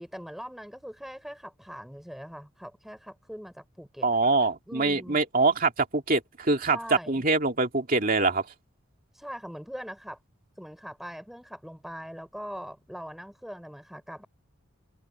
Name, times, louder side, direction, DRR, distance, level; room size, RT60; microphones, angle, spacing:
voice 1, 0.0-4.1 4.7-5.2 6.7-7.2 9.1-10.2 10.6-14.3, equal, ahead, 4.4 m, -41 dB
voice 2, 4.0-8.5, right 3 dB, 40° right, 2.5 m, -24 dB
head